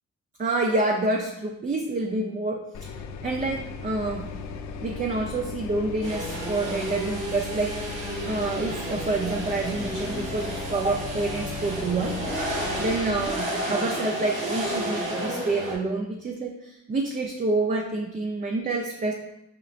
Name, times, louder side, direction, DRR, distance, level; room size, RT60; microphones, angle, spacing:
voice 1, 0.4-2.9 3.2-4.3 4.8-7.7 8.2-12.2 12.8-19.1, right 2 dB, 25° right, 1 dB, 0.5 m, -28 dB
sound 1, 2.7-13.3, left 5 dB, 70° left, 0.6 m, -37 dB
Lambo idle and rev, 6.0-15.7, right 1 dB, 80° right, 1.6 m, -32 dB
4.9 x 4.4 x 2.5 m, 0.88 s
cardioid pair, 90°, 30 cm